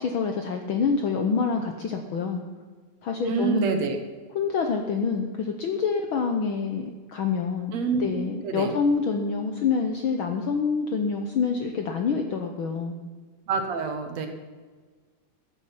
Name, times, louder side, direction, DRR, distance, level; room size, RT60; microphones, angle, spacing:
voice 1, 0.0-2.4 3.0-3.8 4.3-7.7 8.0-12.9, left 5 dB, 65° left, 4 dB, 1.3 m, -26 dB
voice 2, 3.2-4.0 7.7-8.7 13.5-14.3, right 5 dB, 65° right, 6 dB, 2.5 m, -27 dB
14.5 x 8.9 x 5.8 m, 1.4 s
omnidirectional pair, 3.3 m